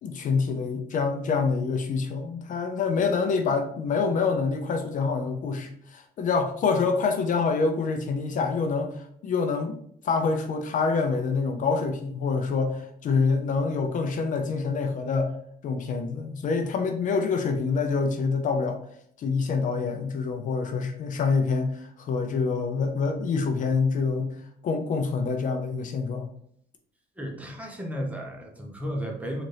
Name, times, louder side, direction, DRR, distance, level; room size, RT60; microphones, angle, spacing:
voice 1, 0.0-9.8 10.0-15.3 15.6-18.8 19.2-24.4 24.6-26.3, left 4 dB, 50° left, 5 dB, 0.5 m, -26 dB
voice 2, 27.2-29.4, equal, 10° right, 0 dB, 0.8 m, -33 dB
3.9 x 2.5 x 3.2 m, 0.66 s
cardioid pair, 110°, 17 cm